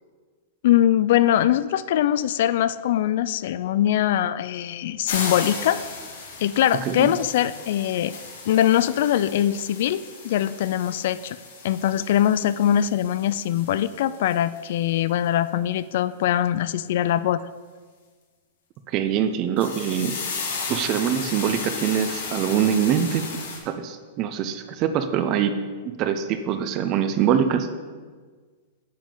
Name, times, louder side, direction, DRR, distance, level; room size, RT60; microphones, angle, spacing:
voice 1, 0.6-5.8 6.4-8.1 8.5-11.4 11.6-17.4, left 11 dB, 60° left, 16 dB, 0.3 m, -22 dB
sound 1, 5.1-14.6 15.0-15.1 19.6-23.6, left 4 dB, 90° left, 2.2 m, -35 dB
voice 2, 6.8-7.1 18.9-20.1 20.7-23.3 23.7-25.6 26.0-27.7, right 8 dB, 35° right, 9 dB, 0.6 m, -23 dB
9.5 x 7.3 x 3.9 m, 1.5 s
supercardioid pair, 155°, 0 cm